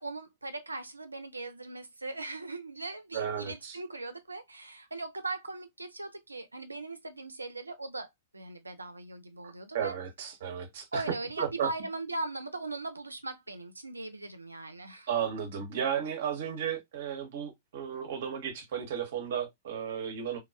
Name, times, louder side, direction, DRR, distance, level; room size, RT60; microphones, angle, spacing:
voice 1, 0.0-10.0 10.9-15.1, right 2 dB, 80° right, 0.5 m, -39 dB
voice 2, 3.1-3.8 9.4-11.0 11.4-11.7 15.1-20.4, right 8 dB, 55° right, 0.8 m, -34 dB
3.3 x 2.3 x 2.2 m
figure-of-eight pair, 105°, 0 cm